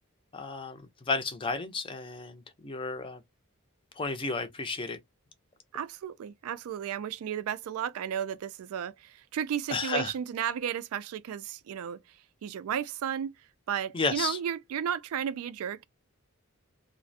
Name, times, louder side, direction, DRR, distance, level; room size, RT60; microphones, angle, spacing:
voice 1, 0.3-3.2 4.0-5.0 9.7-10.1 13.9-14.4, left 4 dB, 25° left, 0.4 m, -32 dB
voice 2, 5.7-12.0 12.4-13.3 13.7-15.8, right 8 dB, 75° right, 0.3 m, -33 dB
2.4 x 2.0 x 2.6 m
head